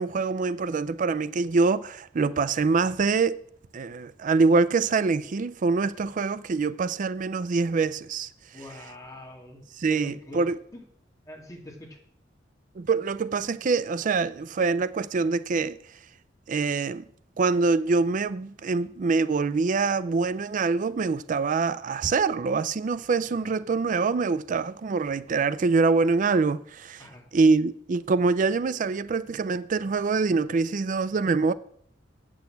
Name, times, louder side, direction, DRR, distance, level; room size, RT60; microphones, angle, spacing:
voice 1, 0.0-3.4 3.7-8.3 9.8-10.6 12.8-15.8 16.5-17.0 17.4-27.0 27.3-31.5, right 4 dB, 45° right, 0.4 m, -25 dB
voice 2, 8.5-9.6 9.9-10.5 10.7-10.8 11.3-12.0 23.3-23.6 27.0-27.2, left 1 dB, 20° left, 2.3 m, -43 dB
8.3 x 6.2 x 7.7 m
head